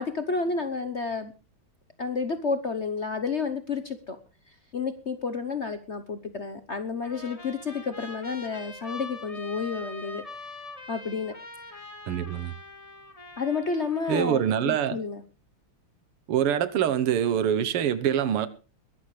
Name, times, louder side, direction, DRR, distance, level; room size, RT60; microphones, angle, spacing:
voice 1, 0.0-1.3 2.0-4.2 4.7-10.2 10.9-11.3 13.4-15.2, left 4 dB, 50° left, 0.8 m, -30 dB
Trumpet, 7.0-14.7, left 2 dB, 15° left, 1.8 m, -43 dB
voice 2, 12.1-12.5 14.1-15.0 16.3-18.5, right 9 dB, 85° right, 2.0 m, -25 dB
22.0 x 12.0 x 3.3 m
omnidirectional pair, 2.4 m